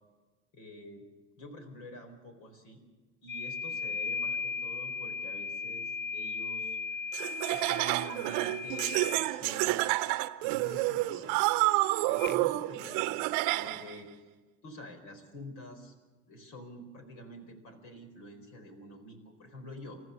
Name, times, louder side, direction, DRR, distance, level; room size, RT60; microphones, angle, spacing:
voice 1, 0.5-1.0 1.4-2.8 3.2-6.8 7.5-9.9 10.4-11.4 12.0-14.1 14.6-15.9 16.3-20.0, equal, 65° left, 5 dB, 4.6 m, -47 dB
sound 1, 3.3-9.4 12.2-12.4, left 5 dB, 30° left, 0.7 m, -36 dB
Laughter, 7.1-13.9, right 19 dB, 70° right, 0.8 m, -29 dB
28.5 x 14.5 x 6.7 m, 1.3 s
hypercardioid pair, 60°, 34 cm